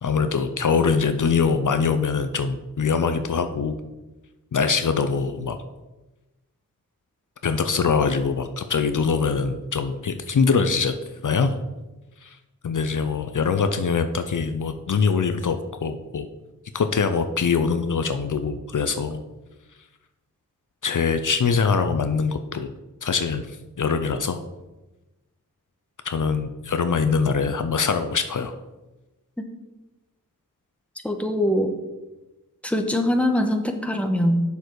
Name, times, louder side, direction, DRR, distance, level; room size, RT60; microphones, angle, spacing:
voice 1, 0.0-3.8 4.5-5.6 7.4-11.0 11.2-11.6 12.2-12.4 12.6-15.6 15.8-16.3 16.7-19.2 20.8-22.7 23.0-23.5 23.8-24.4 26.0-28.6, left 5 dB, 65° left, 9 dB, 0.6 m, -23 dB
voice 2, 31.0-31.7 32.6-34.4, equal, 5° left, 4 dB, 1.1 m, -22 dB
7.1 x 6.6 x 4.7 m, 1.1 s
cardioid pair, 45°, 34 cm